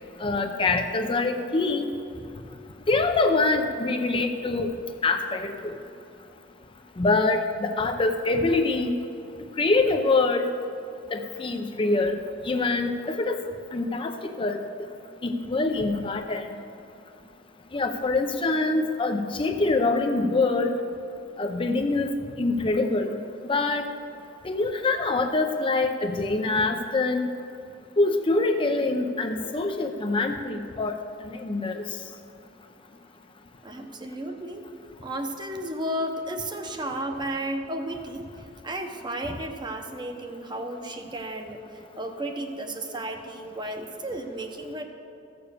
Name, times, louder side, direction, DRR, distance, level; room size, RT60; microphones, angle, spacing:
voice 1, 0.2-1.9 2.9-4.7 5.0-5.8 7.0-8.9 9.6-10.5 11.1-13.4 13.7-14.9 15.2-16.5 17.7-20.7 21.4-22.1 22.4-23.2 23.5-23.9 24.4-27.3 28.0-31.8, left 3 dB, 30° left, 5 dB, 0.5 m, -25 dB
voice 2, 33.6-34.6 35.0-38.3 38.6-41.6 41.9-44.8, right 1 dB, 25° right, 5 dB, 0.9 m, -33 dB
14.0 x 6.9 x 6.8 m, 2.6 s
head